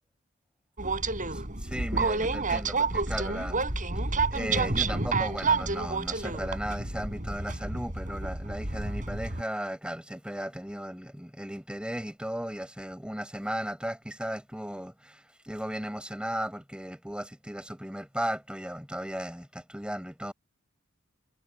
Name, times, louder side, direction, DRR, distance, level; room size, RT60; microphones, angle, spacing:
Train, 0.8-9.4, right 3 dB, 40° right, 5.2 m, -29 dB
voice 1, 1.3-3.6 4.3-20.3, equal, 5° right, 7.5 m, -36 dB
head